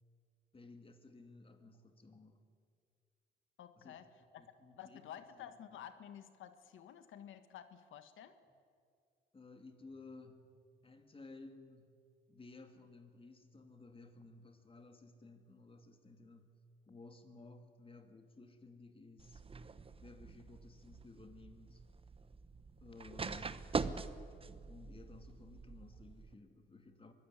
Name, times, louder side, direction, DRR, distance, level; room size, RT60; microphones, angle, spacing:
voice 1, 0.5-2.4 3.8-4.0 4.4-5.5 9.3-10.5 10.8-12.0 12.3-16.6 16.9-19.4 20.0-21.8 22.8-23.6 24.7-27.1, left 3 dB, 25° left, 6 dB, 2.6 m, -56 dB
voice 2, 3.6-4.0 4.3-4.4 4.8-8.4 23.4-23.5, left 10 dB, 80° left, 10 dB, 1.5 m, -52 dB
sound 1, 19.2-26.3, right 4 dB, 30° right, 1.0 m, -44 dB
23.5 x 16.0 x 10.0 m, 2.2 s
cardioid pair, 90°, 20 cm